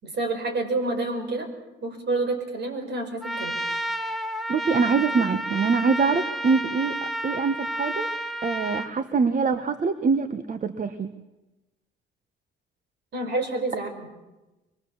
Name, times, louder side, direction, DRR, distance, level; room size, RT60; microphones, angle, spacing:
voice 1, 0.0-1.5 1.8-3.6 13.1-13.9, right 2 dB, 60° right, 6 dB, 5.4 m, -28 dB
Trumpet, 3.2-8.9, right 1 dB, ahead, 1.5 m, -30 dB
voice 2, 4.5-8.1 8.4-11.1, right 5 dB, 40° right, 10 dB, 1.2 m, -24 dB
24.0 x 21.5 x 7.2 m, 1.1 s
cardioid pair, 90°, 20 cm